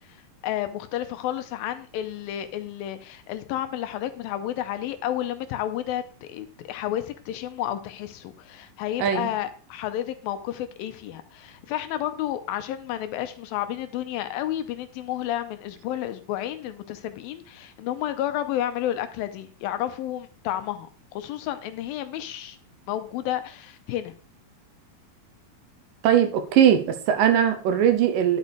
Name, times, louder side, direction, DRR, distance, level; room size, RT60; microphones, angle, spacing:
voice 1, 0.1-22.6 22.9-24.2, left 12 dB, 85° left, 10 dB, 2.4 m, -31 dB
voice 2, 9.0-9.3 26.0-28.4, right 9 dB, 75° right, 8 dB, 2.2 m, -20 dB
10.5 x 6.6 x 3.3 m, 0.41 s
omnidirectional pair, 4.3 m